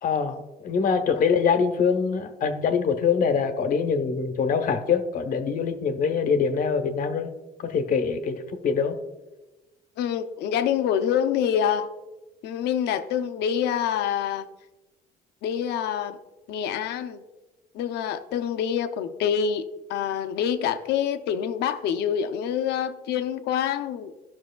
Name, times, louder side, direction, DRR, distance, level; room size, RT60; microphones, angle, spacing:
voice 1, 0.0-7.3 7.6-9.0, left 6 dB, 55° left, 7 dB, 0.9 m, -24 dB
voice 2, 10.0-11.9 12.4-14.5 15.4-16.2 16.5-17.2 17.7-24.2, left 8 dB, 80° left, 9 dB, 0.7 m, -26 dB
15.0 x 6.0 x 2.3 m, 1.1 s
cardioid pair, 110°, 17 cm